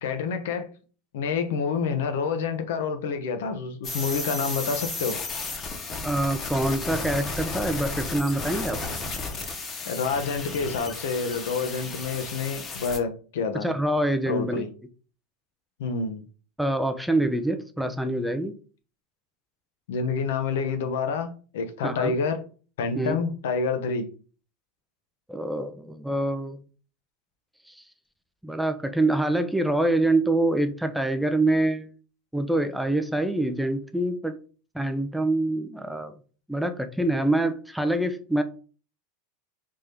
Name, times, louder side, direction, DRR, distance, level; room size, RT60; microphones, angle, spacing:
voice 1, 0.0-0.7 1.1-5.2 9.8-13.7 14.3-14.7 15.8-16.2 19.9-22.4 22.8-24.1, left 5 dB, 80° left, 0.7 m, -28 dB
sound 1, 3.8-13.0, left 3 dB, 30° left, 0.9 m, -33 dB
voice 2, 6.0-8.8 13.5-14.6 16.6-18.6 21.8-22.1 22.9-23.2 25.3-26.6 27.7-27.8 28.4-31.9 32.3-34.4 34.7-36.2 36.5-38.4, right 1 dB, ahead, 0.4 m, -25 dB
3.4 x 2.7 x 3.4 m
supercardioid pair, 130°, 0 cm